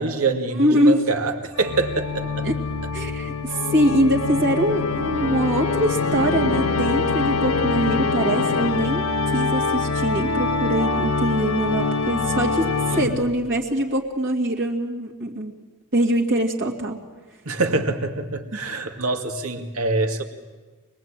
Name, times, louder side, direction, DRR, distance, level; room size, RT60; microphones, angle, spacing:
voice 1, 0.0-2.5 12.9-13.3 17.5-20.2, right 3 dB, 85° right, 6 dB, 2.2 m, -25 dB
voice 2, 0.6-1.0 2.4-2.5 2.9-9.0 9.3-12.7 12.9-15.5 15.9-17.0, equal, 60° right, -2 dB, 2.4 m, -23 dB
Organ, 1.6-13.4, left 4 dB, 80° left, 1.3 m, -24 dB
25.0 x 20.0 x 8.9 m, 1.3 s
head